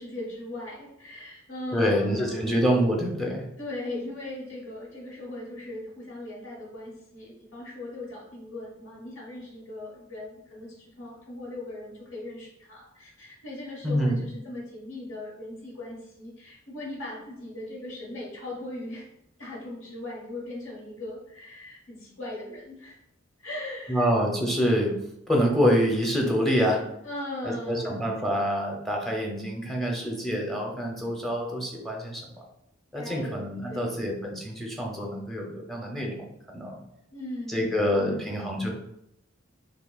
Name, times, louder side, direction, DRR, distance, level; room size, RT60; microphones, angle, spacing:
voice 1, 0.0-2.7 3.6-19.0 19.4-23.0 23.4-24.1 27.0-28.0 32.9-34.0 37.1-38.5, left 1 dB, 70° left, -5 dB, 1.3 m, -39 dB
voice 2, 1.7-3.5 13.8-14.2 23.9-25.0 25.3-26.8 27.4-32.4 32.9-36.8 37.5-38.7, equal, ahead, -1 dB, 0.7 m, -26 dB
6.1 x 2.2 x 2.3 m, 0.79 s
head